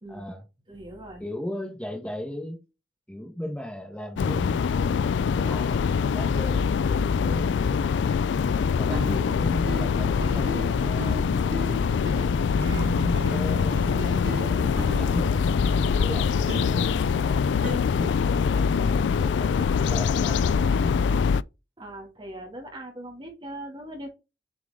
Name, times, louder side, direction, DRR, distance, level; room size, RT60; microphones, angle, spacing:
voice 1, 0.1-0.4 1.2-2.6 3.1-8.1 8.8-12.8 13.2-18.2 18.5-21.0, left 1 dB, 5° left, 1.2 m, -38 dB
voice 2, 0.7-1.2 21.8-24.1, right 1 dB, 30° right, 2.3 m, -40 dB
sound 1, 4.2-21.4, left 6 dB, 80° left, 0.3 m, -24 dB
sound 2, 8.9-16.0 16.5-17.8, right 1 dB, 70° right, 2.0 m, -36 dB
7.3 x 4.6 x 3.7 m
head